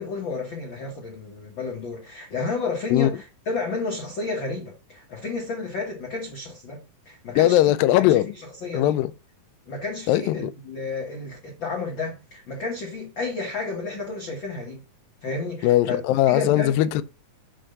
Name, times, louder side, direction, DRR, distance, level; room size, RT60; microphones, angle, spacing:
voice 1, 0.0-7.6 8.1-8.2 8.6-8.9 9.7-14.8 15.2-16.0 16.3-16.7, left 3 dB, 70° left, 1.1 m, -31 dB
voice 2, 7.4-8.4 8.7-9.1 10.1-10.5 15.6-17.0, left 14 dB, 85° left, 2.3 m, -20 dB
7.7 x 3.4 x 6.5 m
omnidirectional pair, 4.0 m